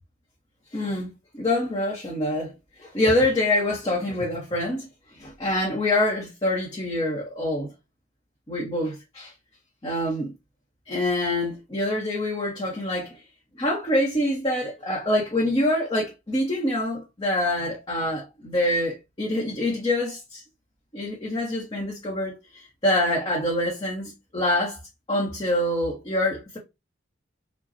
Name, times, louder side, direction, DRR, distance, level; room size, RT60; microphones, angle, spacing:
voice 1, 0.7-2.5 2.8-4.9 5.2-7.7 8.5-9.3 9.8-10.3 10.9-13.2 13.6-20.4 20.9-24.8 25.1-26.6, left 1 dB, 25° left, 0.9 m, -25 dB
4.9 x 2.3 x 2.7 m
head